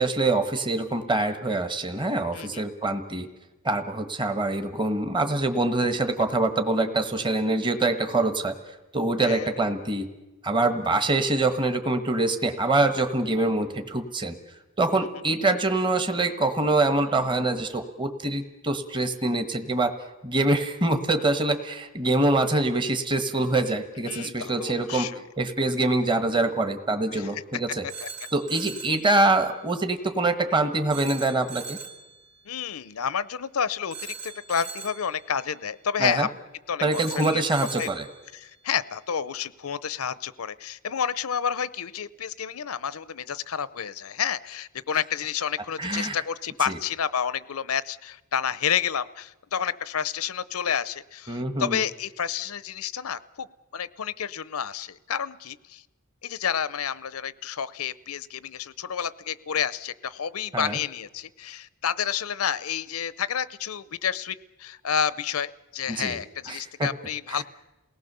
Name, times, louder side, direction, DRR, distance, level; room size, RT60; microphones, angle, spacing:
voice 1, 0.0-3.3 3.6-8.5 8.9-10.1 10.4-14.4 14.8-19.9 20.2-25.1 25.4-27.9 28.3-31.8 36.0-36.3 36.8-38.1 45.8-46.2 46.7-46.8 51.3-51.8 60.5-60.8 65.9-66.2 66.5-66.9 67.3-67.4, right 2 dB, 25° right, 7 dB, 1.3 m, -25 dB
voice 2, 9.2-9.5 24.0-25.2 27.1-27.3 28.0-28.1 32.5-36.3 36.7-37.4 37.8-37.9 38.3-53.5 53.7-55.8 56.2-67.4, left 8 dB, 80° left, 17 dB, 0.7 m, -30 dB
Telephone, 27.9-29.1 30.9-32.1 33.9-35.1 36.9-38.1, right 5 dB, 55° right, 2.9 m, -39 dB
28.5 x 18.5 x 6.8 m, 1.1 s
head